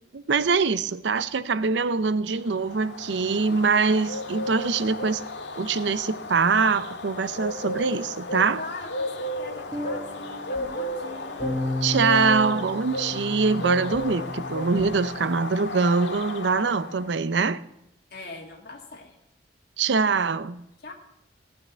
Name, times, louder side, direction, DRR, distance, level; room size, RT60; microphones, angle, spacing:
voice 1, 0.1-5.2 5.6-8.6 11.8-17.6 19.8-20.6, right 4 dB, 75° right, 16 dB, 0.6 m, -24 dB
Bird, 2.4-17.1, left 1 dB, 80° left, 1.7 m, -34 dB
voice 2, 8.6-11.4 18.1-19.2 20.8-20.9, left 2 dB, 55° left, 0 dB, 1.8 m, -41 dB
sound 1, 9.7-15.5, left 2 dB, 15° right, 1.5 m, -34 dB
17.0 x 6.5 x 9.3 m, 0.82 s
head